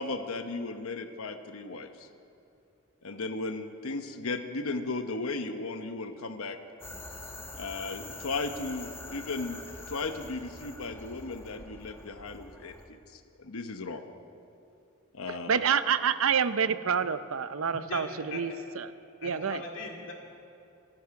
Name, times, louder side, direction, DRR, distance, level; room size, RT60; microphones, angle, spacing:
voice 1, 0.0-2.1 3.0-6.6 7.5-9.6 9.9-14.0 15.1-15.6, left 3 dB, 80° left, 7 dB, 1.0 m, -36 dB
sound 1, 6.8-12.8, left 2 dB, 10° left, 1.0 m, -45 dB
voice 2, 15.5-18.9 19.2-19.6, right 7 dB, 75° right, 13 dB, 0.6 m, -28 dB
voice 3, 19.2-20.1, left 3 dB, 60° left, 0 dB, 2.4 m, -39 dB
26.5 x 11.0 x 4.8 m, 2.6 s
head